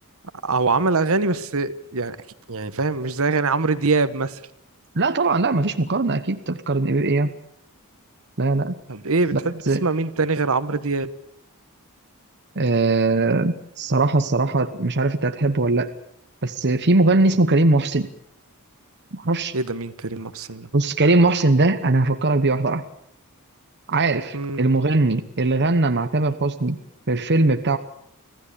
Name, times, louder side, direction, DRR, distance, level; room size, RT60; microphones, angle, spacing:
voice 1, 0.4-2.2 2.5-4.4 8.9-9.5 9.8-11.1 19.5-20.7 24.3-24.7, right 3 dB, 65° right, 12 dB, 1.3 m, -23 dB
voice 2, 4.9-7.3 8.4-8.8 9.3-9.8 12.5-15.9 16.4-18.1 19.1-19.5 20.7-22.8 23.9-26.8 27.1-27.8, right 2 dB, 50° right, 8 dB, 1.1 m, -20 dB
26.0 x 16.0 x 8.5 m, 0.76 s
head